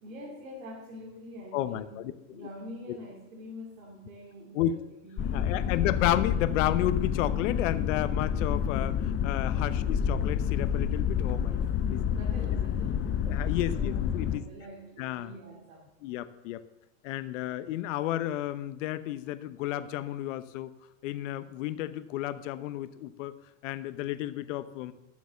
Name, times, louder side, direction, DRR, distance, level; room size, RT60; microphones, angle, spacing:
voice 1, 0.0-2.0 2.3-6.0 11.4-13.1 13.5-15.9, equal, 80° right, -2 dB, 3.0 m, -46 dB
voice 2, 1.5-2.5 2.9-3.0 4.5-4.8 5.3-11.6 11.9-12.0 13.3-14.5 15.0-15.3 16.0-16.6 17.0-20.7 21.0-23.3 23.6-24.9, left 13 dB, 70° left, 13 dB, 1.0 m, -32 dB
sound 1, 5.2-14.4, left 8 dB, 30° left, 0.7 m, -29 dB
11.5 x 7.2 x 6.9 m, 0.91 s
supercardioid pair, 115°, 40 cm